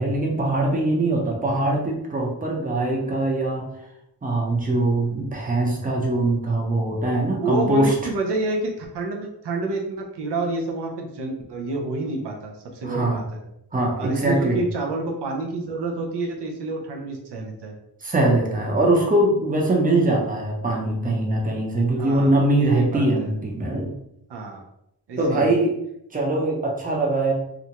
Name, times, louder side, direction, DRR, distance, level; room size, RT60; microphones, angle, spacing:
voice 1, 0.0-3.6 4.2-7.9 12.8-13.2 13.7-14.6 18.0-23.9 25.2-25.7 26.1-27.3, right 2 dB, 20° right, -1 dB, 0.7 m, -22 dB
voice 2, 7.4-13.4 14.0-17.7 22.0-23.3 24.3-24.6 25.1-25.6, right 2 dB, 80° right, 1 dB, 0.6 m, -28 dB
2.5 x 2.1 x 2.8 m, 0.79 s
wide cardioid pair, 75°, 40 cm